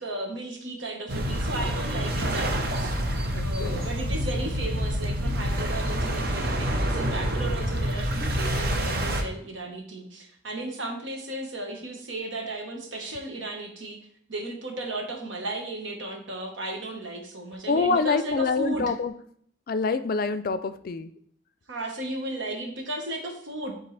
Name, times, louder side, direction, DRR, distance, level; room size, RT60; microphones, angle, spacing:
voice 1, 0.0-3.0 3.4-14.0 14.3-18.9 21.7-23.7, right 1 dB, 85° right, 2 dB, 1.4 m, -35 dB
sound 1, 1.1-9.2, equal, 55° right, 0.8 m, -27 dB
voice 2, 3.3-3.9 17.7-19.1 19.7-21.1, left 4 dB, 50° left, 12 dB, 0.4 m, -26 dB
10.5 x 3.6 x 3.3 m, 0.65 s
head